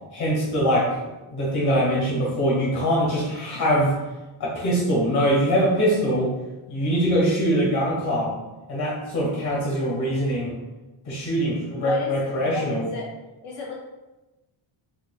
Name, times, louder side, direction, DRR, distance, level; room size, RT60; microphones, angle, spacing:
voice 1, 0.1-0.9 1.3-3.9 4.4-6.3 6.7-8.4 8.7-10.5 11.0-12.9, equal, 50° left, -3 dB, 1.4 m, -23 dB
voice 2, 11.7-13.1 13.4-13.7, left 4 dB, 90° left, -3 dB, 0.7 m, -34 dB
4.7 x 2.3 x 2.3 m, 1.1 s
cardioid pair, 135°, 50 cm